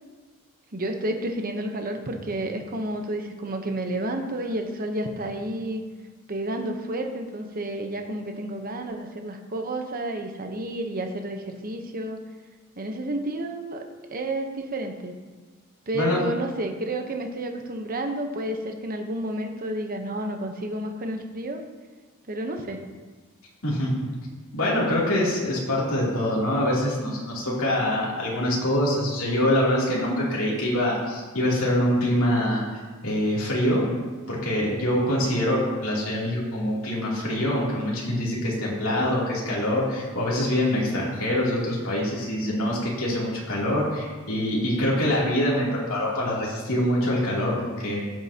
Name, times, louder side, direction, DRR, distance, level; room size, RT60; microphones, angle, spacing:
voice 1, 0.7-5.8 6.3-12.2 12.8-13.8 14.1-15.1 15.9-21.6 22.3-22.8 38.9-39.2, right 1 dB, 45° right, 4 dB, 1.0 m, -30 dB
voice 2, 23.6-23.9 24.5-33.9 34.3-48.0, left 1 dB, 70° left, -6 dB, 3.0 m, -24 dB
15.5 x 7.6 x 2.9 m, 1.4 s
head